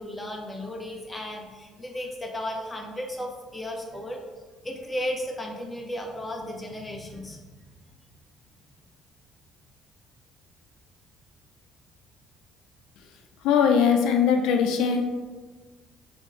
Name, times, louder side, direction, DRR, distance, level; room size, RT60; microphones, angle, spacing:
voice 1, 0.0-4.2 4.6-7.4, left 1 dB, 10° left, 0 dB, 0.7 m, -34 dB
voice 2, 13.4-15.0, left 7 dB, 85° left, 4 dB, 0.4 m, -20 dB
3.5 x 2.7 x 3.8 m, 1.4 s
cardioid pair, 105°, 0 cm